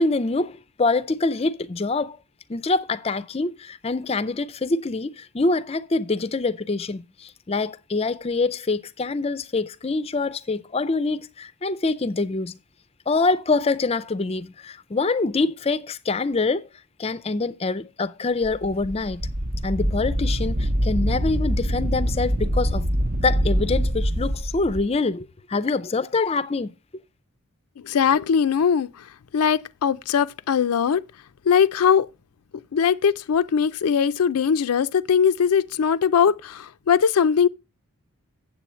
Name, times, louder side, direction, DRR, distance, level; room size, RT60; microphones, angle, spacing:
voice 1, 0.0-2.2 2.5-12.6 13.1-16.7 17.0-19.2 19.6-22.9 23.2-26.7, left 3 dB, 25° left, 0.4 m, -25 dB
Wind, 18.4-24.8, equal, 40° right, 0.7 m, -24 dB
voice 2, 27.8-28.9 29.3-31.0 31.5-32.1 32.7-37.5, left 7 dB, 85° left, 0.4 m, -20 dB
8.4 x 7.5 x 4.3 m
head